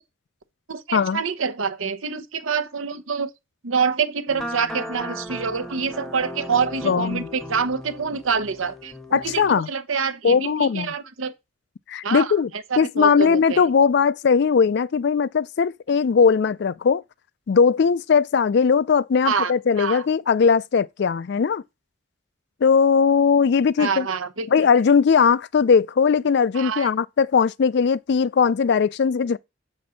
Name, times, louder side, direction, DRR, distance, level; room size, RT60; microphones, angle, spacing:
voice 1, 0.7-3.3 3.6-9.4 9.7-11.3 12.0-12.3 12.7-13.7 19.2-19.5 19.8-20.0 23.8-24.5 26.5-26.9, right 5 dB, 75° right, 0.9 m, -26 dB
sound 1, 4.3-9.5, equal, ahead, 0.9 m, -36 dB
voice 2, 6.8-7.3 9.1-9.7 10.2-10.9 11.9-12.5 12.8-17.0 17.5-21.6 22.6-24.1 24.5-29.4, left 6 dB, 55° left, 0.4 m, -19 dB
7.0 x 4.3 x 6.2 m
head